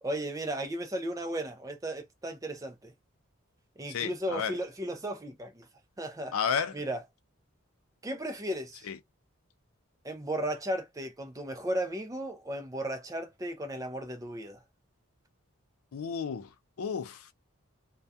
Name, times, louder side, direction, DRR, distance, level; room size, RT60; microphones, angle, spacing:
voice 1, 0.0-2.9 3.8-5.7 6.0-6.3 6.7-7.0 8.0-8.9 10.0-14.6, right 1 dB, 15° right, 0.4 m, -35 dB
voice 2, 3.9-4.5 6.3-6.7 8.9-9.0 15.9-16.5 16.8-17.3, left 7 dB, 85° left, 0.4 m, -32 dB
2.3 x 2.2 x 2.7 m
head